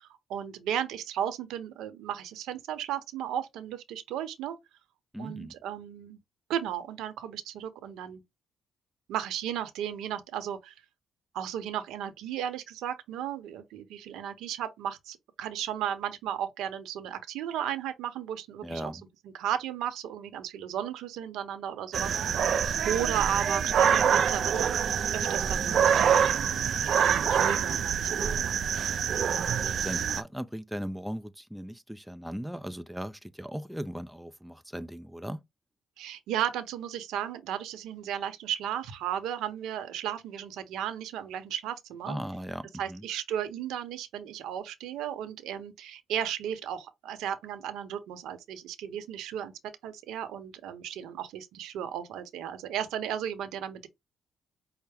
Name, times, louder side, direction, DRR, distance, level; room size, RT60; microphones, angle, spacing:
voice 1, 0.0-4.6 5.2-6.2 6.5-8.2 9.1-10.7 11.3-18.9 19.3-22.1 22.8-24.7 25.1-26.2 26.8-28.6 36.0-42.2 42.8-49.5 49.8-53.9, right 10 dB, 90° right, 0.9 m, -34 dB
voice 2, 5.1-5.5 18.6-19.0 29.6-35.4 42.1-43.1, equal, 5° right, 0.4 m, -38 dB
sound 1, 21.9-30.2, right 7 dB, 60° right, 0.4 m, -26 dB
5.7 x 2.1 x 3.4 m
cardioid pair, 90°, 0 cm